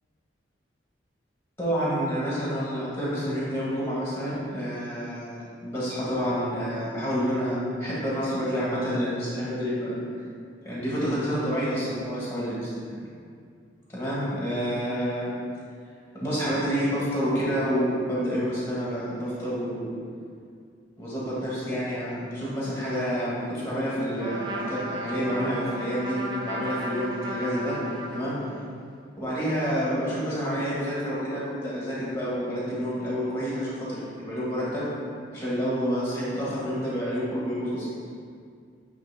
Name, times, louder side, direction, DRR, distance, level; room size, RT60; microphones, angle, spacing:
voice 1, 1.6-10.0 10.6-13.0 13.9-15.3 16.2-19.9 21.0-27.7 28.1-28.3 29.2-34.8 35.3-37.8, equal, 15° left, -8 dB, 1.5 m, -28 dB
Trumpet, 24.2-28.7, right 1 dB, 25° right, 0.4 m, -35 dB
8.1 x 3.5 x 3.5 m, 2.2 s
head